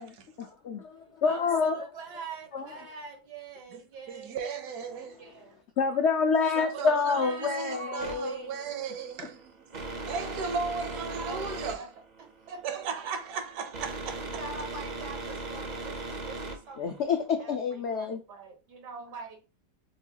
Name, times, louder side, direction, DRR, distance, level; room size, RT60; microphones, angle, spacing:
voice 1, 0.4-1.8 2.5-2.6 5.8-8.5 16.8-18.2, left 5 dB, 75° left, 0.6 m, -27 dB
voice 2, 1.2-5.6 6.6-8.9 11.1-11.9 12.2-12.8 14.2-17.5 17.8-19.4, right 4 dB, 85° right, 1.9 m, -44 dB
voice 3, 4.1-5.2 6.8-9.7 10.1-11.9 12.6-14.4, right 5 dB, 70° right, 1.2 m, -36 dB
sound 1, 8.0-17.2, right 2 dB, 50° right, 0.5 m, -39 dB
6.2 x 2.3 x 2.7 m
omnidirectional pair, 1.7 m